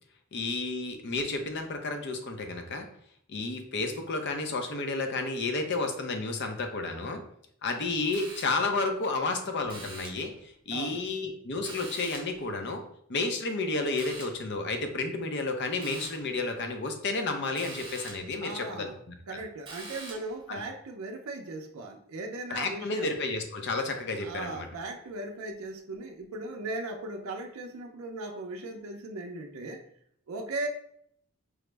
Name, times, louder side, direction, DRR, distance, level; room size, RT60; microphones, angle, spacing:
voice 1, 0.3-2.9 3.3-7.2 7.6-12.8 13.1-18.9 19.3-19.4 20.5-20.6 22.5-24.7, left 3 dB, 55° left, 5 dB, 0.6 m, -31 dB
sound 1, 8.1-8.8 9.7-10.3 11.6-12.5 14.0-14.5 15.8-16.3 17.6-18.4 19.7-20.4, right 3 dB, 25° right, 0.9 m, -44 dB
voice 2, 10.7-11.1 18.4-19.0 19.3-23.1 24.2-29.8 30.3-30.7, right 2 dB, 70° right, 3 dB, 0.5 m, -38 dB
4.8 x 2.0 x 3.2 m, 0.66 s
head